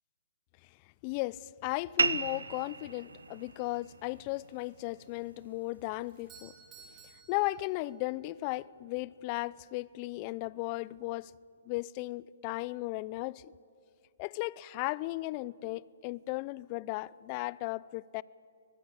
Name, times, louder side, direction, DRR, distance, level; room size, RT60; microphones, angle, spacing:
voice 1, 1.0-6.5 7.3-11.3 11.7-13.5 14.2-18.2, left 20 dB, 35° left, 0.5 m, -36 dB
sound 1, 2.0-7.0, right 4 dB, 85° right, 1.0 m, -37 dB
Doorbell, 6.1-8.2, right 6 dB, 20° right, 5.2 m, -56 dB
23.0 x 19.5 x 8.7 m
hypercardioid pair, 140°, 0 cm